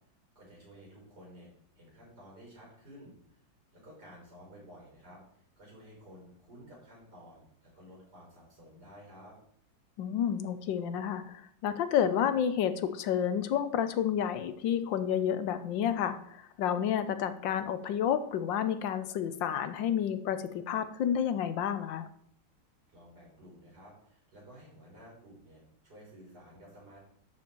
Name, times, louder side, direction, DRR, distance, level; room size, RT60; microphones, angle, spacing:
voice 1, 0.4-1.5 1.8-3.2 3.7-9.4 22.9-27.0, equal, 60° right, -4 dB, 6.2 m, -53 dB
voice 2, 10.0-22.1, left 9 dB, 80° left, 11 dB, 1.5 m, -30 dB
11.5 x 7.8 x 4.6 m, 0.66 s
omnidirectional pair, 2.0 m